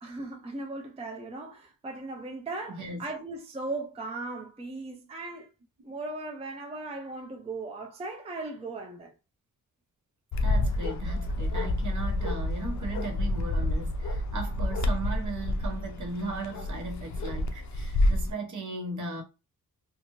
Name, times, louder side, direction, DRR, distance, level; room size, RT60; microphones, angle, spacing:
voice 1, 0.0-5.5 5.8-9.1, right 2 dB, 20° right, 0.4 m, -38 dB
voice 2, 2.7-3.0 10.4-19.2, right 2 dB, 60° right, 0.9 m, -37 dB
Bark, 10.3-18.3, left 1 dB, 55° left, 0.4 m, -29 dB
2.7 x 2.4 x 2.9 m
wide cardioid pair, 160°, 34 cm